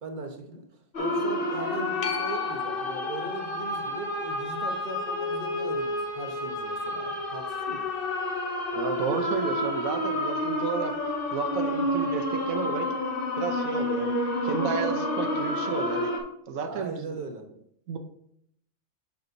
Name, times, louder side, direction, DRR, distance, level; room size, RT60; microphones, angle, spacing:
voice 1, 0.0-0.6 1.0-7.9 16.6-17.5, right 2 dB, 40° right, 3 dB, 1.1 m, -39 dB
sound 1, 0.9-16.2, left 1 dB, 45° left, 1.2 m, -29 dB
sound 2, 2.0-9.2 14.7-14.8, left 4 dB, 75° left, 1.2 m, -42 dB
voice 2, 8.7-11.0 11.3-12.9 13.4-16.2 16.5-17.2 17.9-18.0, right 5 dB, 80° right, 7 dB, 1.1 m, -32 dB
7.0 x 6.5 x 2.6 m, 0.72 s
omnidirectional pair, 1.4 m